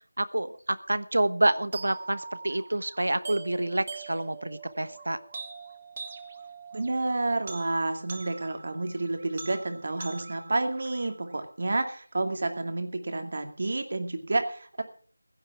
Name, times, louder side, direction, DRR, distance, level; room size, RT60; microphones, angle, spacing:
voice 1, 0.2-5.2, right 1 dB, 75° right, 13 dB, 1.2 m, -28 dB
sound 1, 1.7-11.7, right 4 dB, 30° right, 1.5 m, -44 dB
voice 2, 6.7-14.8, right 2 dB, 45° right, 6 dB, 2.4 m, -30 dB
16.0 x 11.5 x 4.9 m, 0.42 s
figure-of-eight pair, 170°, 0 cm